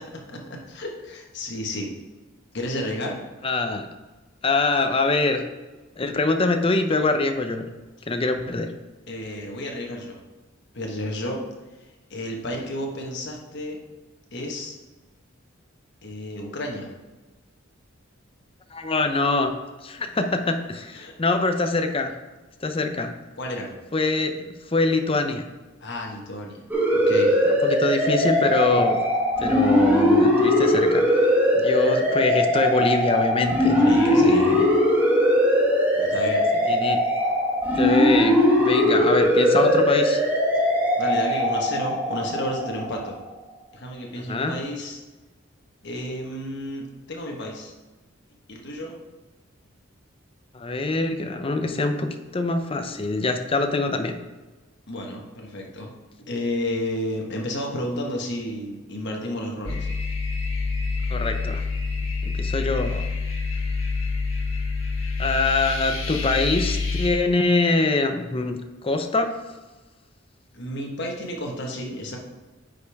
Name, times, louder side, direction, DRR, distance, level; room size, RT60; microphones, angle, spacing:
voice 1, 0.0-1.9 2.5-3.2 9.1-10.2 10.7-11.4 12.1-13.8 14.3-14.7 16.0-16.9 20.9-21.1 23.4-23.7 25.8-26.6 26.9-27.4 33.7-34.9 35.9-36.4 40.5-40.6 41.0-43.2 43.7-45.0 45.8-47.7 48.5-49.0 54.9-55.9 56.2-59.9 70.5-72.2, left 1 dB, 55° left, 0 dB, 1.4 m, -32 dB
voice 2, 3.4-3.9 4.4-5.4 6.0-7.7 8.1-8.7 18.7-19.5 19.8-22.1 22.6-23.1 23.9-24.3 24.7-25.4 27.6-29.0 29.4-34.6 36.7-37.0 37.7-40.2 44.3-44.5 50.5-54.2 61.1-61.6 62.2-63.0 65.2-69.3, left 3 dB, 25° left, 6 dB, 0.6 m, -24 dB
sound 1, 26.7-43.1, left 1 dB, 10° right, 1.3 m, -20 dB
sound 2, 59.7-67.1, left 4 dB, 85° left, 1.4 m, -27 dB
9.3 x 5.2 x 3.5 m, 1.2 s
head